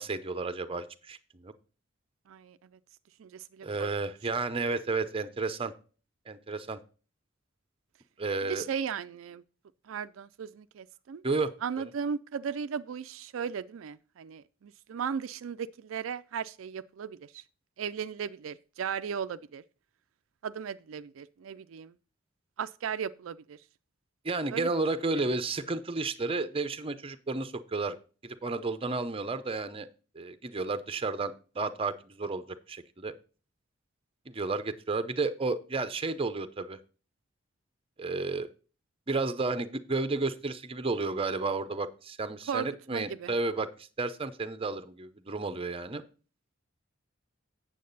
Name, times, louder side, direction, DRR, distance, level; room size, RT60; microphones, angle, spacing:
voice 1, 0.0-1.5 3.6-5.7 6.3-6.8 8.2-8.6 11.2-11.5 11.8-11.9 24.2-28.0 28.2-29.9 30.1-33.1 34.3-36.8 38.0-38.5 39.1-46.0, right 3 dB, 30° right, 0.7 m, -32 dB
voice 2, 2.3-2.6 3.2-3.9 8.4-9.4 9.9-11.2 11.6-17.4 17.8-19.6 20.4-21.9 22.6-23.6 24.5-24.7 25.1-25.3 42.5-43.3, right 7 dB, 80° right, 0.4 m, -36 dB
8.5 x 7.4 x 4.0 m
head